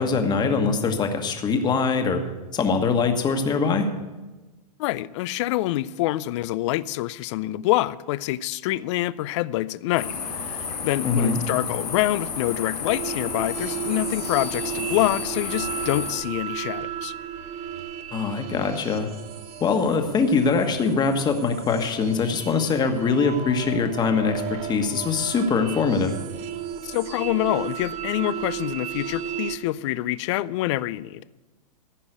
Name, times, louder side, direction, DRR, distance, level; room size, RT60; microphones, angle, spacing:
voice 1, 0.0-2.2 2.5-3.9 11.0-11.4 18.1-19.1 19.6-26.1, left 4 dB, 20° left, 6 dB, 1.4 m, -23 dB
voice 2, 4.8-17.1 26.8-31.2, left 16 dB, 45° left, 18 dB, 0.5 m, -26 dB
sound 1, 10.0-16.1, left 5 dB, 85° left, 4.3 m, -32 dB
sound 2, 12.9-29.6, right 9 dB, 30° right, 1.0 m, -34 dB
14.5 x 5.4 x 9.2 m, 1.2 s
hypercardioid pair, 125°, 21 cm